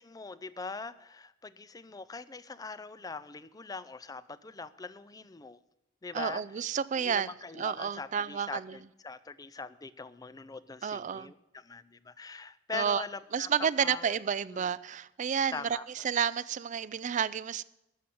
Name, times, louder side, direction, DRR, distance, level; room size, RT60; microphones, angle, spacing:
voice 1, 0.0-5.6 6.0-6.4 6.9-13.5 13.8-14.2 14.5-14.7 15.5-16.1, left 4 dB, 20° left, 0.5 m, -42 dB
voice 2, 6.1-8.8 10.8-11.3 12.7-13.0 13.3-17.6, right 7 dB, 40° right, 0.4 m, -31 dB
13.0 x 7.1 x 7.7 m
head